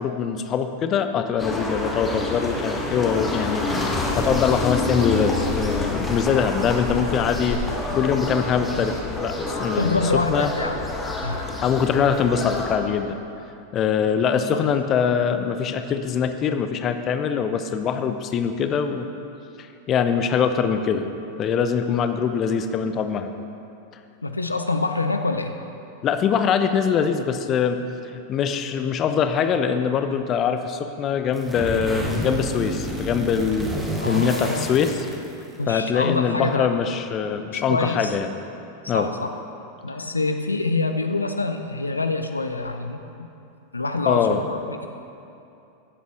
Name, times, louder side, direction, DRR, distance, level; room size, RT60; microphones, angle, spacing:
voice 1, 0.0-10.0 10.3-10.5 11.6-13.2 13.7-19.1 19.6-21.1 21.4-23.3 26.0-27.8 28.1-33.7 34.0-35.1 35.7-38.3 38.9-39.1 44.1-44.4, left 7 dB, 30° left, 9 dB, 0.6 m, -23 dB
sound 1, 1.4-12.8, left 2 dB, 15° left, 1.4 m, -28 dB
voice 2, 9.8-10.8 11.2-11.5 14.6-14.7 24.2-25.6 34.0-34.7 35.6-36.7 37.5-38.2 38.8-39.3 39.8-43.3 43.7-44.8, left 3 dB, 80° left, 6 dB, 0.5 m, -26 dB
sound 2, 31.3-35.6, equal, 5° right, 1.4 m, -30 dB
16.0 x 8.1 x 3.1 m, 2.7 s
figure-of-eight pair, 90°, 0 cm